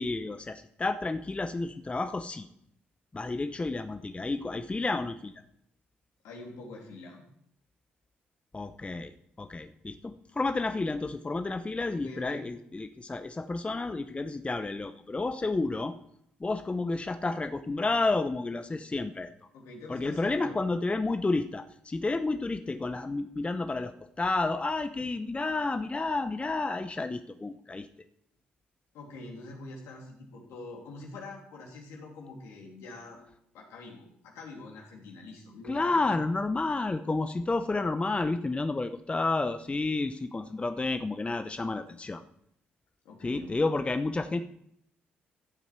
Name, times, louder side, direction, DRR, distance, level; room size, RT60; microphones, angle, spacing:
voice 1, 0.0-2.5 3.1-5.3 8.5-9.1 9.4-15.9 16.4-19.3 19.9-27.9 35.7-42.2 43.2-44.4, left 3 dB, 25° left, 9 dB, 0.8 m, -31 dB
voice 2, 6.2-7.2 11.9-12.5 19.5-20.6 28.9-33.2 33.5-36.2 43.0-43.7, left 2 dB, 75° left, 0 dB, 3.1 m, -45 dB
14.5 x 8.2 x 4.5 m, 0.73 s
hypercardioid pair, 50°, 5 cm